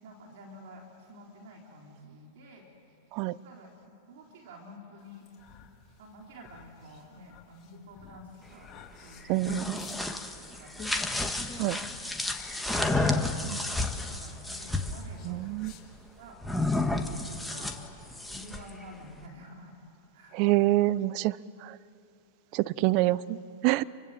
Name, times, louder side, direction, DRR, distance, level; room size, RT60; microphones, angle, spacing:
voice 1, 0.0-2.7 3.4-5.3 6.0-9.8 10.5-11.1 11.7-12.1 12.5-15.7 16.2-16.4 16.7-17.1 17.5-17.7 18.3-19.8 20.1-20.7, equal, 65° right, 0 dB, 3.9 m, -50 dB
sound 1, 5.1-16.3, left 5 dB, 35° left, 4.1 m, -49 dB
sound 2, 9.2-15.0 16.4-18.7, left 2 dB, 5° left, 1.8 m, -31 dB
voice 2, 9.3-9.8 11.6-11.8 15.3-15.7 20.3-21.4 21.6-21.8 22.5-23.2 23.6-23.8, right 18 dB, 50° right, 18 dB, 0.7 m, -26 dB
27.5 x 24.5 x 7.7 m, 2.7 s
hypercardioid pair, 110°, 0 cm